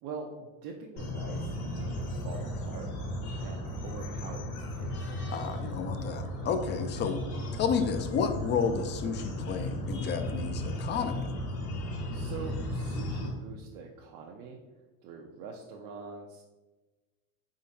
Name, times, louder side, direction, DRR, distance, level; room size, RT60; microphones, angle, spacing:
voice 1, 0.0-2.9 3.4-5.2 12.1-14.6 15.0-16.4, right 4 dB, 65° right, 0 dB, 0.6 m, -44 dB
sound 1, 1.0-13.3, left 1 dB, 65° left, 1.5 m, -35 dB
voice 2, 5.3-7.2 7.5-11.3, left 6 dB, 30° left, 8 dB, 0.4 m, -31 dB
4.2 x 3.8 x 2.7 m, 1.2 s
supercardioid pair, 110°, 38 cm